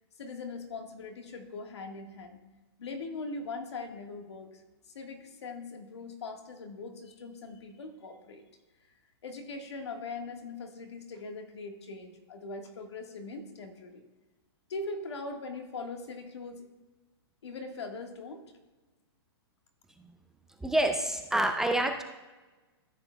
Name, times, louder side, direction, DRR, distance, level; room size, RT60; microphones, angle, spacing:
voice 1, 0.2-2.4 2.8-4.6 4.9-8.5 9.2-14.0 14.7-16.6 17.4-18.4, left 3 dB, 85° left, 5 dB, 1.5 m, -41 dB
voice 2, 20.6-22.0, right 1 dB, 5° right, 5 dB, 0.3 m, -27 dB
14.0 x 6.8 x 2.2 m, 1.2 s
hypercardioid pair, 155°, 14 cm